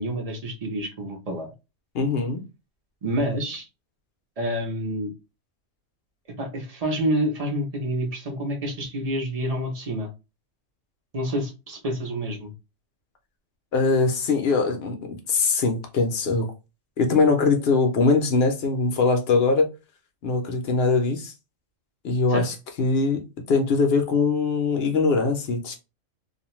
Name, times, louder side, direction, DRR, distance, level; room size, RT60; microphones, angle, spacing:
voice 1, 0.0-1.5 3.0-3.7 4.4-5.1 6.4-10.1 11.1-12.5 22.3-22.5, equal, 35° right, 0.7 m, -28 dB
voice 2, 1.9-2.4 13.7-16.5 17.0-19.7 20.2-21.3 22.0-25.8, left 4 dB, 60° left, 0.8 m, -22 dB
2.5 x 2.2 x 2.9 m
omnidirectional pair, 1.3 m